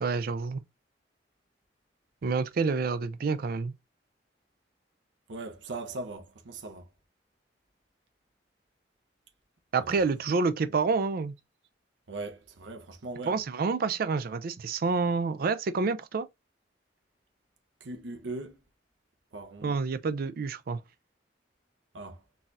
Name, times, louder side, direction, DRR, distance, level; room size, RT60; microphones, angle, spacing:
voice 1, 0.0-0.6 2.2-3.7 9.7-11.3 13.3-16.3 19.6-20.8, right 4 dB, 55° right, 0.4 m, -28 dB
voice 2, 5.3-6.9 12.1-13.4 17.8-18.6 19.3-19.7 21.9-22.2, right 2 dB, 90° right, 0.7 m, -39 dB
4.0 x 2.7 x 2.4 m
head